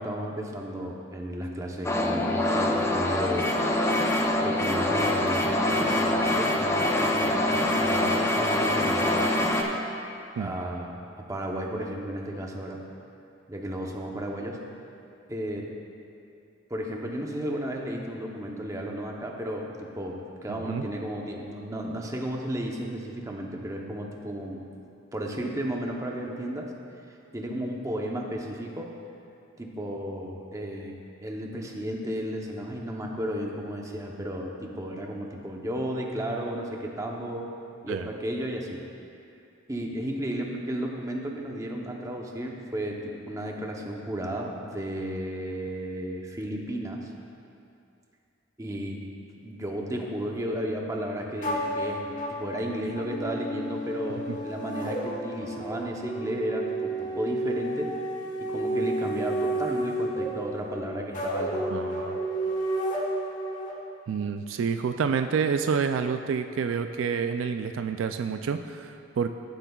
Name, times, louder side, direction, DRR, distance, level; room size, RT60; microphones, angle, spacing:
voice 1, 0.0-3.5 4.4-9.3 10.3-12.8 13.5-14.6 15.3-15.7 16.7-24.7 25.1-26.7 27.3-28.9 29.6-30.9 31.2-37.5 37.8-38.8 39.7-47.1 48.6-49.0 49.4-57.9 58.4-61.8, equal, 15° right, 0 dB, 0.8 m, -33 dB
sound 1, 1.8-9.6, left 1 dB, 15° left, 0.6 m, -24 dB
sound 2, 51.4-63.7, right 1 dB, 40° left, 1.2 m, -31 dB
voice 2, 61.7-62.2 64.1-69.4, right 6 dB, 75° right, 8 dB, 0.3 m, -28 dB
15.0 x 7.8 x 2.3 m, 2.6 s
head